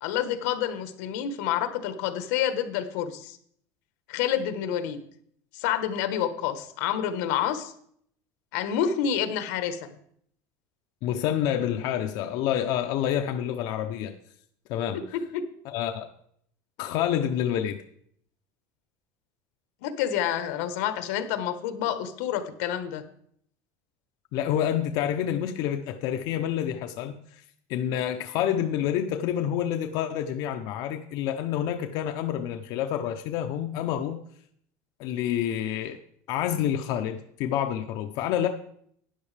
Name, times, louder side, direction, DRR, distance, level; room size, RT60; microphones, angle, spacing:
voice 1, 0.0-3.4 4.1-5.0 5.5-7.7 8.5-9.9 15.1-15.4 19.8-23.0, left 9 dB, 85° left, 10 dB, 1.2 m, -28 dB
voice 2, 11.0-14.1 14.7-15.0 15.6-16.1 16.8-17.8 24.3-27.4 27.7-34.2 35.0-36.0 36.3-38.5, left 10 dB, 55° left, 5 dB, 0.6 m, -28 dB
12.5 x 9.7 x 3.3 m, 0.67 s
cardioid pair, 175°, 9 cm